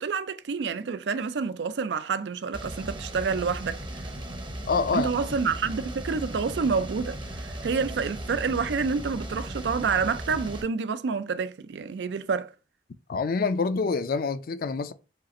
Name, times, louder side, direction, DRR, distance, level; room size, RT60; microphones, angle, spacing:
voice 1, 0.0-4.1 4.9-12.5, right 5 dB, 75° right, 0.4 m, -28 dB
sound 1, 2.5-10.6, right 1 dB, 25° right, 0.8 m, -37 dB
voice 2, 4.7-5.1 13.1-14.9, left 4 dB, 55° left, 0.4 m, -26 dB
5.1 x 2.5 x 4.1 m
head